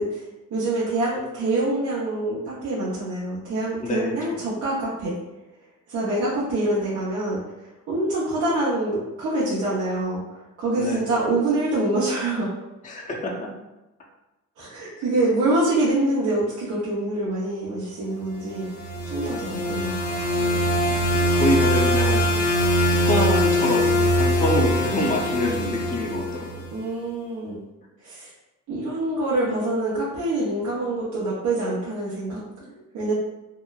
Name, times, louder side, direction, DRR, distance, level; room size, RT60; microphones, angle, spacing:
voice 1, 0.0-5.1 5.9-12.5 14.6-18.7 19.0-20.0 26.7-27.6 28.0-28.3 28.7-32.4 32.9-33.1, right 2 dB, 75° right, -9 dB, 0.7 m, -25 dB
voice 2, 3.8-4.4 10.8-11.1 12.8-13.5 20.4-20.7 21.1-22.3 22.8-26.5 32.6-32.7, left 1 dB, 25° left, -1 dB, 0.5 m, -26 dB
sound 1, 18.5-26.7, equal, 90° left, 0.6 m, -22 dB
2.9 x 2.0 x 2.3 m, 1.0 s
cardioid pair, 90°, 30 cm